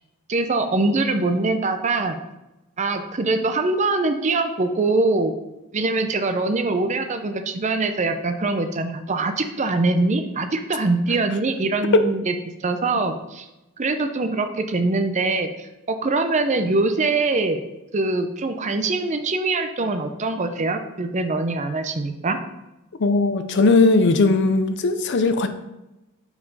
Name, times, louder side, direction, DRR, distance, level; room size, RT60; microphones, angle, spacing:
voice 1, 0.3-2.2 2.8-5.4 5.7-12.3 12.6-13.5 13.8-17.6 17.9-22.4, right 3 dB, 30° right, 7 dB, 0.5 m, -23 dB
voice 2, 23.0-25.5, left 3 dB, 55° left, 9 dB, 0.5 m, -18 dB
7.4 x 4.7 x 4.1 m, 0.96 s
head